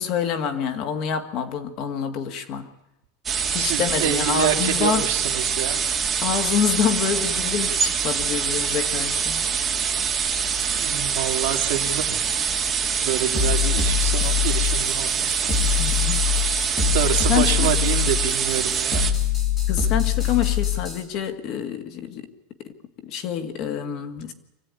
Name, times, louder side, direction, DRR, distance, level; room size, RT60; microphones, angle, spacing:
voice 1, 0.0-2.7 3.5-5.1 6.2-9.5 15.8-16.3 17.3-17.7 19.7-22.3 22.6-24.3, left 8 dB, 35° left, 8 dB, 1.9 m, -27 dB
sound 1, 3.3-19.1, right 6 dB, 15° right, 1.7 m, -24 dB
voice 2, 3.6-5.8 10.7-12.2 13.0-15.5 16.9-19.0, right 12 dB, 60° right, 4 dB, 2.4 m, -27 dB
sound 2, 13.3-21.0, left 9 dB, 20° left, 3.6 m, -24 dB
24.5 x 15.5 x 9.7 m, 0.96 s
supercardioid pair, 175°, 0 cm